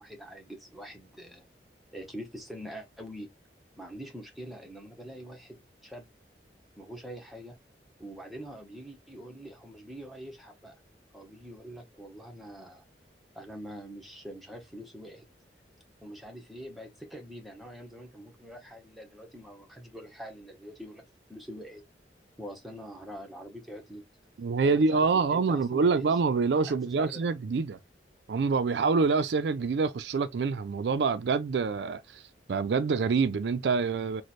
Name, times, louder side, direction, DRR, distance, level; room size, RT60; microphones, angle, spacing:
voice 1, 0.0-1.5 1.9-3.3 3.8-6.1 6.8-7.6 8.0-10.8 11.1-12.8 13.3-15.2 16.0-21.8 22.4-24.0 24.6-26.2 26.6-27.2, equal, ahead, 0.8 m, -44 dB
voice 2, 24.4-27.8 28.3-32.2 32.5-34.2, right 4 dB, 75° right, 0.4 m, -26 dB
3.1 x 2.1 x 4.1 m
head